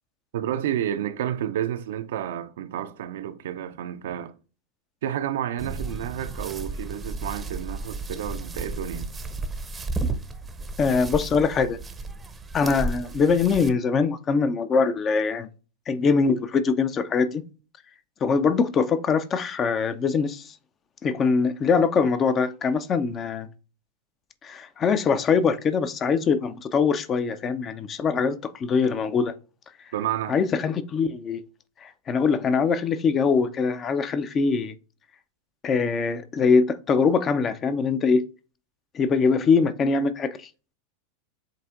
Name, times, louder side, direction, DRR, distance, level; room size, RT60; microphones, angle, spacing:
voice 1, 0.3-4.3 5.0-9.1 29.9-30.4, right 10 dB, 65° right, 0.5 m, -30 dB
sound 1, 5.6-13.7, right 2 dB, 20° right, 0.7 m, -33 dB
voice 2, 10.8-11.8 12.5-15.5 15.9-17.4 18.2-20.5 21.0-23.5 24.4-29.3 30.3-31.4 31.8-34.7 35.6-38.2 38.9-40.5, left 5 dB, 30° left, 0.5 m, -23 dB
7.7 x 2.8 x 2.5 m
hypercardioid pair, 90°, 0 cm